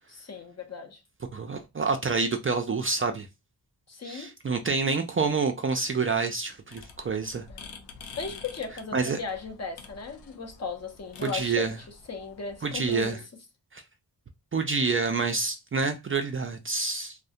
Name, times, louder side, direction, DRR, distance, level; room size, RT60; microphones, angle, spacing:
voice 1, 0.1-1.0 3.9-4.3 7.5-7.7 8.2-11.7 12.1-13.2, left 5 dB, 40° left, 0.7 m, -37 dB
voice 2, 1.3-3.3 4.0-7.5 8.9-9.2 11.2-11.8 12.6-13.2 13.7-13.8 14.5-17.2, right 4 dB, 30° right, 0.4 m, -27 dB
sound 1, 6.7-13.1, left 5 dB, 80° left, 0.6 m, -48 dB
2.3 x 2.1 x 2.7 m
cardioid pair, 45°, 41 cm